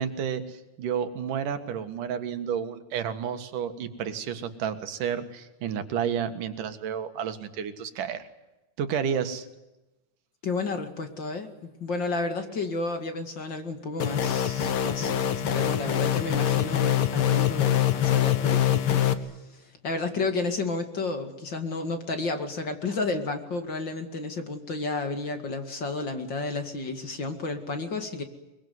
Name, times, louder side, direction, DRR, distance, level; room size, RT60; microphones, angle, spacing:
voice 1, 0.0-8.3 8.8-9.5, right 8 dB, 90° right, 9 dB, 3.3 m, -31 dB
voice 2, 10.4-11.5 11.8-28.2, left 3 dB, 40° left, 6 dB, 2.6 m, -32 dB
sound 1, 14.0-19.1, left 10 dB, 55° left, 1.9 m, -24 dB
23.0 x 23.0 x 9.5 m, 1.0 s
omnidirectional pair, 3.6 m